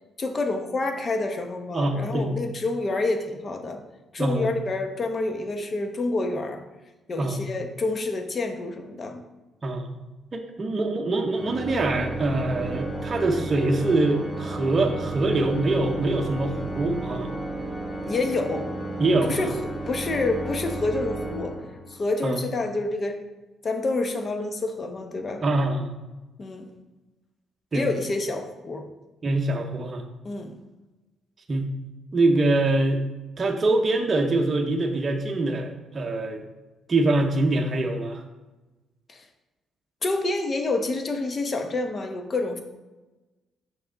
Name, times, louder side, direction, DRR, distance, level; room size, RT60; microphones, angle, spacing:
voice 1, 0.2-3.8 4.1-6.6 7.1-9.3 18.1-18.7 19.2-19.6 19.9-21.6 21.9-23.2 23.6-25.4 26.4-26.7 27.7-28.8 30.2-30.6 39.1-39.2 40.0-42.6, left 2 dB, 40° left, 5 dB, 0.9 m, -28 dB
voice 2, 1.7-2.3 4.2-4.5 7.2-7.5 9.6-9.9 10.3-17.3 19.0-19.5 22.2-22.4 25.4-25.9 27.7-27.9 29.2-30.0 31.5-31.7 32.1-33.0 33.4-36.4 36.9-38.2, right 2 dB, 35° right, 2 dB, 0.8 m, -24 dB
Organ, 11.3-22.1, right 1 dB, 5° left, 1.3 m, -33 dB
5.9 x 5.7 x 3.9 m, 1.1 s
cardioid pair, 90°, 0 cm